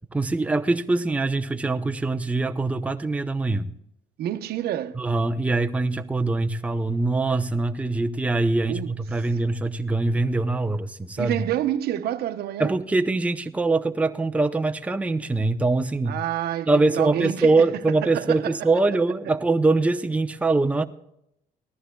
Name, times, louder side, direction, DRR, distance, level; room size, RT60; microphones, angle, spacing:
voice 1, 0.1-3.7 5.0-11.4 12.6-16.2 16.7-20.9, right 3 dB, 10° right, 0.7 m, -23 dB
voice 2, 4.2-5.0 8.7-8.9 11.2-12.7 16.1-17.6 18.0-18.5, right 12 dB, 70° right, 0.9 m, -28 dB
19.0 x 14.0 x 2.3 m
cardioid pair, 110°, 17 cm